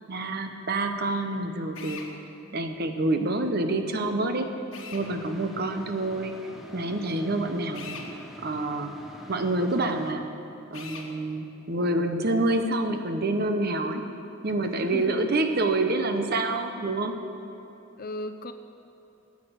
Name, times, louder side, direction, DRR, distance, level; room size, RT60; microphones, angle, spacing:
voice 1, 0.1-2.0 2.5-4.5 4.9-6.4 6.7-8.0 8.4-8.9 9.3-10.3 10.7-14.0 14.4-17.2, right 2 dB, 45° right, 7 dB, 0.8 m, -27 dB
Drill, 1.7-2.1 4.7-5.1 7.7-8.1 10.7-11.1, left 5 dB, 65° left, 1.4 m, -40 dB
sound 1, 5.0-10.1, right 1 dB, ahead, 0.8 m, -45 dB
voice 2, 14.8-15.2 18.0-18.5, left 2 dB, 45° left, 9 dB, 0.6 m, -36 dB
10.5 x 8.3 x 8.0 m, 2.9 s
head